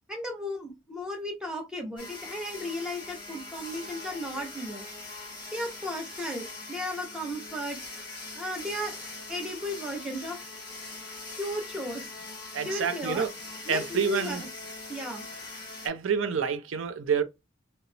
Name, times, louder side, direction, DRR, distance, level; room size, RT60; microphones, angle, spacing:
voice 1, 0.1-4.9 5.5-7.8 8.3-9.0 9.3-10.4 11.3-12.1 12.6-13.3 13.7-14.5 14.9-15.2, left 1 dB, 5° right, 0.9 m, -35 dB
sound 1, 2.0-15.9, left 2 dB, 25° left, 1.8 m, -42 dB
voice 2, 12.5-13.3 13.7-14.4 15.8-17.2, right 6 dB, 85° right, 0.5 m, -28 dB
3.9 x 2.1 x 2.7 m
head